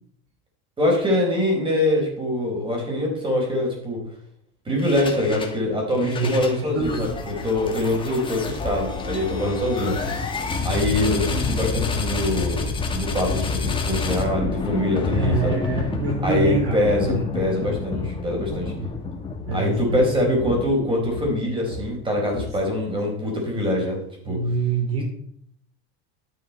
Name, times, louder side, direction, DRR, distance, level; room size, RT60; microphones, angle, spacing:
voice 1, 0.8-4.0 4.6-10.0 10.6-15.6 16.2-18.7 19.5-24.0 24.2-24.4, left 1 dB, 15° right, -1 dB, 4.7 m, -24 dB
sound 1, 4.8-5.6 5.9-22.9, left 4 dB, 15° left, 1.7 m, -29 dB
voice 2, 6.0-7.1 10.0-10.1 15.1-17.2 18.8-18.9 19.4-20.3 24.3-25.0, right 3 dB, 40° right, 0 dB, 2.7 m, -26 dB
12.5 x 9.1 x 4.4 m, 0.67 s
supercardioid pair, 155°, 34 cm